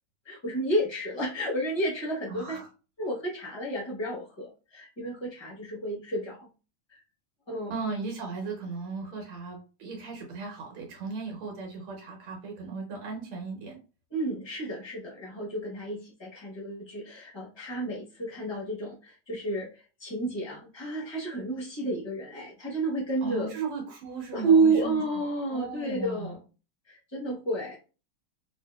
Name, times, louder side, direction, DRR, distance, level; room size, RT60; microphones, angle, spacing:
voice 1, 0.2-2.6 3.0-6.5 6.9-7.0 7.5-7.7 14.1-23.5 24.3-26.4 26.9-27.8, right 2 dB, 25° left, -4 dB, 0.5 m, -30 dB
voice 2, 2.3-2.7 7.7-13.8 23.2-25.0 25.5-26.3, right 4 dB, 85° right, 1 dB, 1.7 m, -37 dB
3.5 x 2.7 x 2.2 m, 0.33 s
omnidirectional pair, 2.3 m